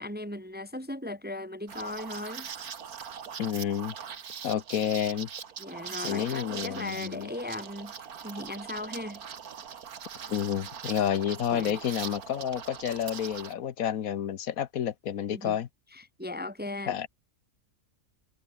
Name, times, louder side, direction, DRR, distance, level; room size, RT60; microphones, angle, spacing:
voice 1, 0.0-2.5 5.6-7.9 8.2-9.2 11.5-11.8 15.3-15.6 15.9-17.0, left 2 dB, 10° right, 0.9 m, -37 dB
Liquid, 1.7-13.5, right 7 dB, 80° right, 1.9 m, -41 dB
voice 2, 3.4-3.9 4.4-5.3 6.0-7.3 10.3-15.7 16.9-17.1, left 9 dB, 75° left, 1.3 m, -30 dB
omnidirectional pair, 1.5 m